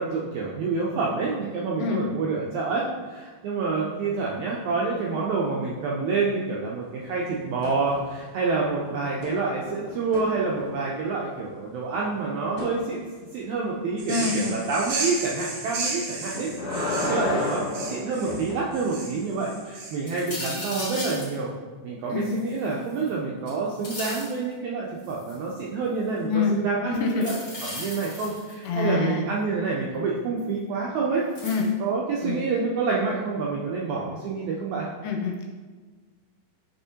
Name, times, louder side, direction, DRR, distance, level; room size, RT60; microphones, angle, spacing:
voice 1, 0.0-13.0 13.3-21.5 21.8-27.4 27.7-31.3 31.8-34.9, right 4 dB, 80° right, -3 dB, 1.7 m, -28 dB
sound 1, 7.6-8.3 8.6-11.0 12.6-12.8 16.1-18.7 20.9-21.0, left 2 dB, 55° left, 1.7 m, -32 dB
sound 2, 14.0-20.3, right 3 dB, 65° right, 1.7 m, -34 dB
voice 2, 14.1-14.6 22.1-22.3 26.3-26.6 27.0-27.3 28.7-29.2 31.4-31.7 32.2-32.4 35.0-35.5, left 5 dB, 80° left, 1 dB, 2.1 m, -26 dB
sound 3, 20.1-21.3 22.2-23.1 23.5-24.4 25.0-25.5 27.1-28.7 30.4-30.5 31.3-31.7, left 1 dB, 30° left, 1.2 m, -36 dB
6.9 x 4.9 x 2.8 m, 1.4 s
omnidirectional pair, 3.9 m